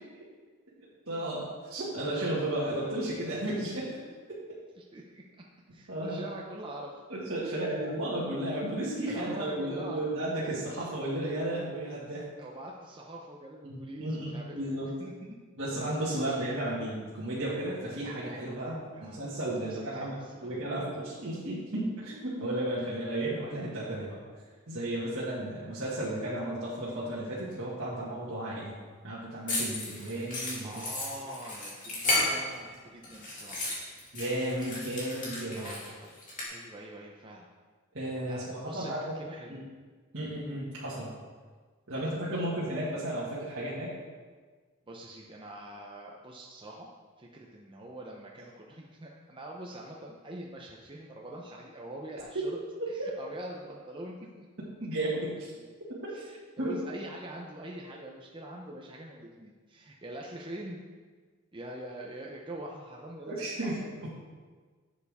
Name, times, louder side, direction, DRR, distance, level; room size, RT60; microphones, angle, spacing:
voice 1, 1.1-3.9 5.9-6.2 7.1-12.3 13.6-14.9 15.6-24.2 24.7-28.7 29.0-30.7 34.1-35.7 37.9-39.2 39.5-39.6 40.1-41.1 41.9-43.9 53.0-53.1 54.8-55.3 55.8-56.1 56.6-56.8 63.3-64.1, right 1 dB, 60° right, -9 dB, 1.9 m, -33 dB
voice 2, 4.8-5.2 5.7-6.9 7.4-7.9 9.1-10.1 12.4-15.4 16.3-16.4 18.9-19.4 19.6-20.5 30.6-33.7 35.5-36.1 36.5-37.5 38.3-39.7 42.0-42.3 44.9-46.9 47.2-52.6 52.9-55.1 56.1-60.8 61.5-63.7 64.0-64.1, right 1 dB, 25° right, -1 dB, 0.7 m, -44 dB
sound 1, 29.5-32.7 33.0-36.4, left 2 dB, 35° left, 2.5 m, -33 dB
11.0 x 7.0 x 3.6 m, 1.4 s
head